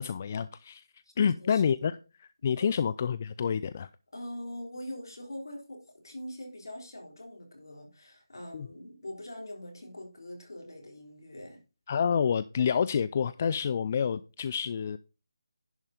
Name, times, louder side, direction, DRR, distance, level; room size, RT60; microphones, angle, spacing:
voice 1, 0.0-0.8 1.2-2.0 2.4-3.9 8.5-8.7 11.9-15.0, left 7 dB, 35° left, 0.4 m, -28 dB
voice 2, 1.0-1.9 2.6-2.9 4.1-11.6, left 1 dB, 70° left, 3.8 m, -43 dB
11.0 x 5.6 x 5.1 m
figure-of-eight pair, 160°, 2 cm